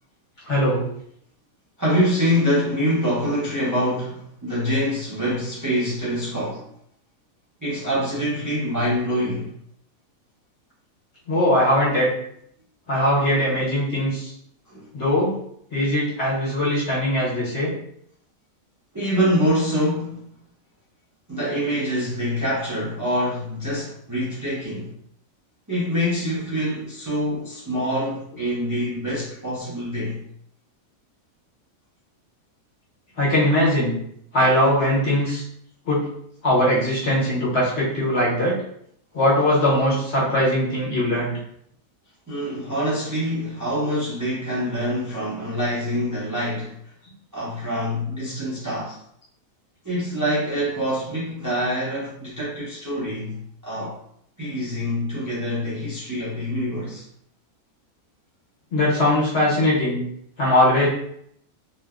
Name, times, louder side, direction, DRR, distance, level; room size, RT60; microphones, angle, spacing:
voice 1, 0.5-0.8 11.3-12.1 12.9-14.3 14.9-15.3 15.7-17.7 33.2-34.0 34.3-35.4 35.8-36.1 36.4-38.6 39.1-41.4 58.7-60.0 60.4-60.9, left 1 dB, 55° left, -7 dB, 1.3 m, -20 dB
voice 2, 1.8-6.7 7.6-9.5 14.7-14.9 18.9-20.3 21.3-24.9 25.7-30.2 42.3-46.7 47.3-49.0 49.8-54.0 54.4-57.0, equal, 25° right, -8 dB, 0.4 m, -25 dB
2.9 x 2.1 x 2.3 m, 0.69 s
omnidirectional pair, 1.5 m